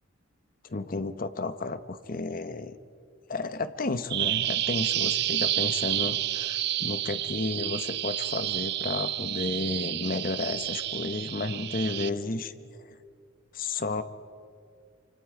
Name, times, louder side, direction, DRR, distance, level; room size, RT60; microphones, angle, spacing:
voice 1, 0.6-2.8 3.3-12.5 12.8-13.0 13.5-14.0, left 3 dB, 45° left, 12 dB, 0.8 m, -32 dB
Bird vocalization bird call bird song, 4.1-12.1, right 13 dB, 55° right, 0.5 m, -30 dB
25.5 x 25.0 x 4.8 m, 2.4 s
head